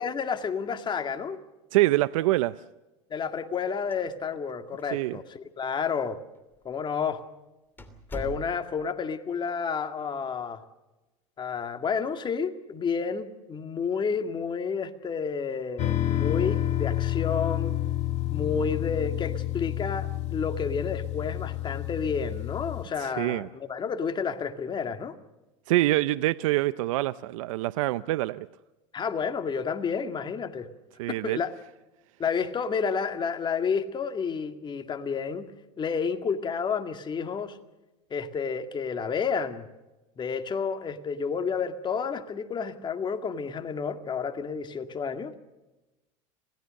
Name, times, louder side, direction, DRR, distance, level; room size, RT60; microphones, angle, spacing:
voice 1, 0.0-1.4 3.1-6.2 6.6-7.2 8.1-10.6 11.4-17.8 18.3-25.2 28.9-30.7 31.1-31.5 32.2-35.5 35.8-37.6 38.1-39.7 40.2-45.3, left 6 dB, 30° left, 7 dB, 2.1 m, -30 dB
voice 2, 1.7-2.6 4.9-5.2 23.0-23.5 25.7-28.5 31.0-31.4, right 17 dB, 80° right, 16 dB, 0.6 m, -25 dB
sound 1, 3.9-4.5 4.8-4.9 5.6-5.7 6.5-6.7 7.1-7.2 7.8-8.9, right 2 dB, 10° left, 2.9 m, -41 dB
sound 2, 15.8-22.8, left 14 dB, 45° left, 2.8 m, -29 dB
27.0 x 17.5 x 6.5 m, 1.0 s
supercardioid pair, 105°, 17 cm